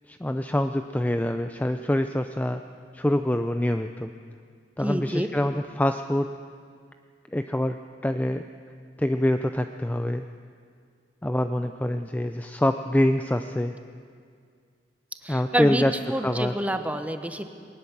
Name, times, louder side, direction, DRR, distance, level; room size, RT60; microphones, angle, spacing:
voice 1, 0.1-2.6 2.9-4.1 4.8-6.3 7.3-8.5 9.0-10.3 11.2-13.7 15.3-16.5, left 1 dB, 10° left, 8 dB, 0.5 m, -25 dB
voice 2, 4.8-5.3 15.2-15.8 16.1-17.5, right 1 dB, 10° right, 8 dB, 1.1 m, -27 dB
21.5 x 19.0 x 7.3 m, 2.1 s
head